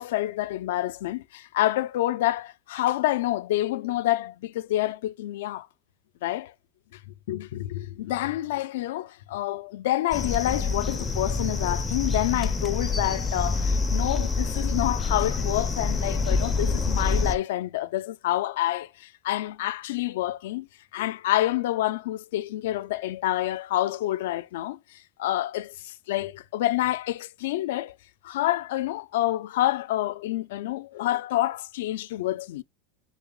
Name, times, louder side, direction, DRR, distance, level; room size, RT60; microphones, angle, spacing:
voice 1, 0.0-5.7 6.2-6.5 7.3-20.7 20.9-27.9 28.2-32.6, left 15 dB, 80° left, 0.4 m, -28 dB
sound 1, 10.1-17.3, left 3 dB, 10° left, 0.4 m, -26 dB
3.9 x 3.8 x 3.6 m
supercardioid pair, 180°, 0 cm